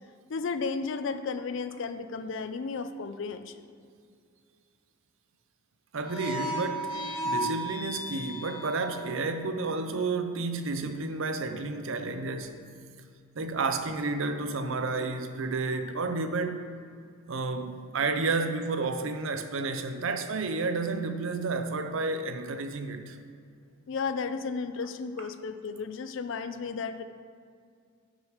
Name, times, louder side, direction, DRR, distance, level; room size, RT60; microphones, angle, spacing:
voice 1, 0.3-3.6 23.9-27.0, left 4 dB, 60° left, 0.4 m, -33 dB
voice 2, 5.9-7.0 7.2-12.7 13.4-16.6 17.3-23.2, right 3 dB, 65° right, 0.6 m, -31 dB
sound 1, 6.0-9.3, equal, 80° left, 1.6 m, -34 dB
6.5 x 6.4 x 5.1 m
head